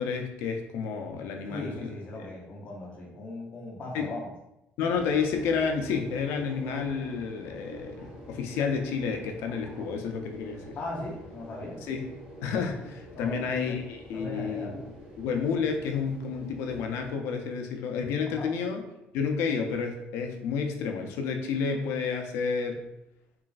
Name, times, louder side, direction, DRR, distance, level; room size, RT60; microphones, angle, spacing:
voice 1, 0.0-1.9 2.2-2.3 3.9-4.1 4.8-10.8 11.9-12.0 12.4-14.7 15.2-18.8 19.1-22.8, left 5 dB, 80° left, 4 dB, 0.4 m, -30 dB
voice 2, 1.5-4.3 10.8-11.8 13.1-13.8 14.1-14.9 18.3-18.5, left 2 dB, 35° left, -3 dB, 0.7 m, -38 dB
sound 1, 4.8-17.1, right 1 dB, 30° right, 1.2 m, -47 dB
3.0 x 2.3 x 2.4 m, 0.88 s
cardioid pair, 160°, 4 cm